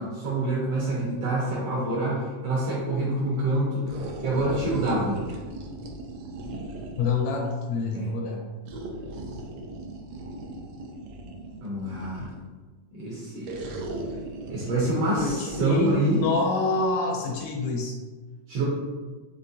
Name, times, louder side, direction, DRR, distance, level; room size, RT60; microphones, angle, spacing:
voice 1, 0.0-3.9 4.2-5.2 7.9-8.1 11.6-12.3 12.9-13.7 14.5-16.2 18.5-18.6, right 2 dB, 65° right, -6 dB, 1.6 m, -26 dB
sound 1, 3.9-7.2 8.7-12.5 13.4-16.4, right 2 dB, 90° right, 1.5 m, -38 dB
voice 2, 7.0-8.4 15.2-18.0, left 3 dB, 80° left, 0 dB, 1.8 m, -27 dB
5.4 x 3.1 x 2.7 m, 1.4 s
omnidirectional pair, 3.6 m